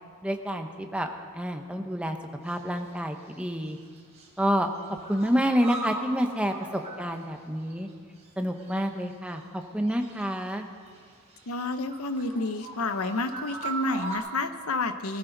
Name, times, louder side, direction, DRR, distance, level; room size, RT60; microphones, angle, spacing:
voice 1, 0.2-1.1 1.3-2.2 2.4-3.8 4.4-7.9 8.4-10.7, equal, 5° right, 4 dB, 1.0 m, -28 dB
sound 1, 2.4-2.9 3.2-4.3 4.6-7.9 8.2-8.3 8.6-10.5 10.8-14.2, right 2 dB, 30° right, 3.3 m, -40 dB
voice 2, 11.5-15.2, left 2 dB, 80° left, 9 dB, 0.9 m, -30 dB
21.0 x 14.0 x 4.0 m, 2.2 s
head